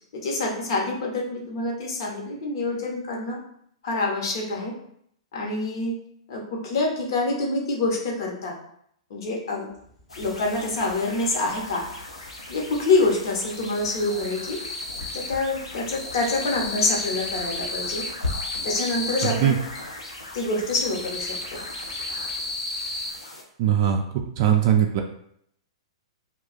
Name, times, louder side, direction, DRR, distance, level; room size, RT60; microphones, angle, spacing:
voice 1, 0.1-3.4 3.8-4.7 5.3-6.0 6.3-8.5 9.1-9.7 10.2-11.8 12.5-14.6 15.1-18.0 18.6-19.6 20.3-21.6, left 2 dB, 55° left, -1 dB, 0.8 m, -26 dB
sound 1, 9.9-10.0 10.3-11.5 11.8-12.5 12.8-15.4 15.7-19.9 20.3-23.1, left 2 dB, 25° left, 0.6 m, -33 dB
sound 2, 10.1-23.4, left 2 dB, 85° left, 0.6 m, -38 dB
voice 2, 23.6-24.0 24.4-25.0, right 9 dB, 40° right, 2 dB, 0.3 m, -20 dB
2.3 x 2.2 x 3.8 m, 0.70 s
figure-of-eight pair, 105°, 3 cm